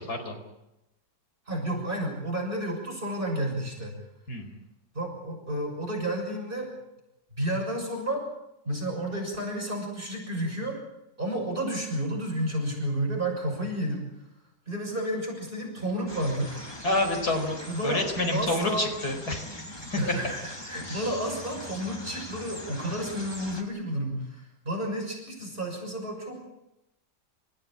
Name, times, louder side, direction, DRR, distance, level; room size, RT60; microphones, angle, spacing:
voice 1, 1.5-3.9 4.9-6.7 7.4-8.3 8.6-10.8 11.2-14.0 14.7-16.8 17.7-18.0 18.3-18.9 20.0-26.4, right 1 dB, 30° right, 0 dB, 6.7 m, -31 dB
sound 1, 16.1-23.6, left 1 dB, 15° left, 2.5 m, -42 dB
voice 2, 16.8-19.7 20.1-20.2 20.8-21.2, left 2 dB, 60° left, 5 dB, 5.1 m, -28 dB
28.5 x 16.0 x 8.9 m, 0.89 s
omnidirectional pair, 1.9 m